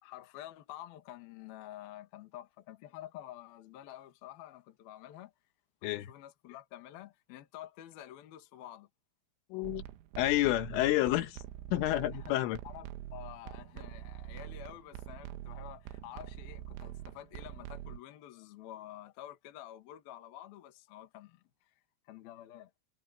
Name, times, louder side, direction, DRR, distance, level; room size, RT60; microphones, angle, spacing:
voice 1, 0.0-5.3 5.8-8.9 12.1-12.3 12.6-21.8 22.1-22.7, left 13 dB, 60° left, 3.1 m, -49 dB
voice 2, 9.5-9.8 10.2-11.4 11.7-12.6, left 16 dB, 85° left, 3.7 m, -29 dB
sound 1, 9.6-18.0, right 13 dB, 85° right, 3.7 m, -45 dB
omnidirectional pair, 5.6 m